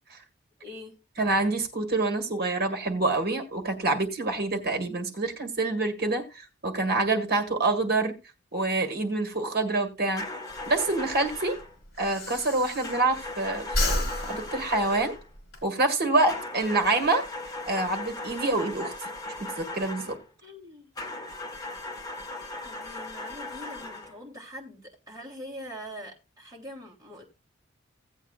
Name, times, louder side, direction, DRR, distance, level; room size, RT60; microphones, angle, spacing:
voice 1, 0.6-1.0 20.4-20.9 22.6-27.2, equal, 20° right, 3.0 m, -43 dB
voice 2, 1.2-8.1 8.5-10.3 10.7-11.6 12.0-15.1 15.6-17.2 17.7-19.1 19.4-20.2, right 2 dB, 50° right, 1.7 m, -26 dB
sound 1, 10.2-11.7 12.8-15.3 16.3-20.2 21.0-24.2, left 2 dB, 20° left, 1.3 m, -38 dB
Breathing, 10.6-13.3 13.6-15.6, left 1 dB, 55° left, 3.1 m, -31 dB
16.5 x 8.2 x 2.4 m
head